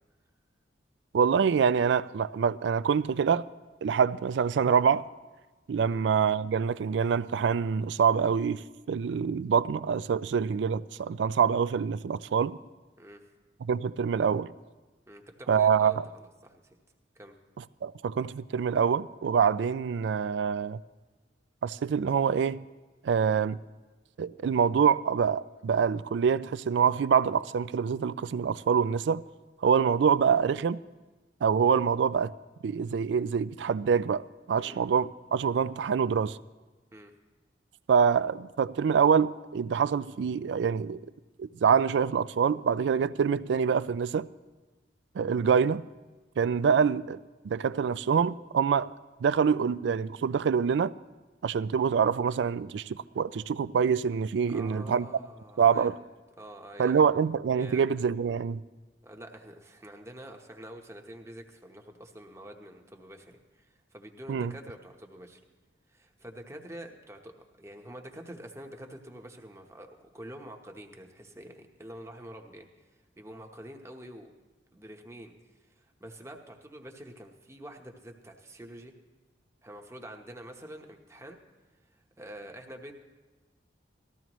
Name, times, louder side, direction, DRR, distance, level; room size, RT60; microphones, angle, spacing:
voice 1, 1.1-3.4 3.8-5.0 5.7-12.6 13.7-14.5 15.5-16.1 17.6-20.8 21.6-22.6 23.0-23.6 24.2-29.2 29.6-30.8 31.4-32.3 32.6-34.2 34.5-36.4 37.9-41.0 41.4-44.3 45.2-45.8 46.4-48.9 49.2-50.9 51.4-55.1 55.6-55.9 56.8-58.6 64.3-64.5, right 6 dB, 70° right, 17 dB, 0.3 m, -25 dB
voice 2, 15.1-16.8 17.1-17.3 34.6-34.8 36.9-37.1 54.5-56.0 56.4-57.0 57.5-58.0 59.0-65.4 65.9-74.3 74.7-75.3 75.8-78.9 79.6-81.4 81.9-82.9, right 1 dB, 15° right, 3 dB, 1.0 m, -47 dB
19.0 x 14.0 x 3.0 m, 1.2 s
head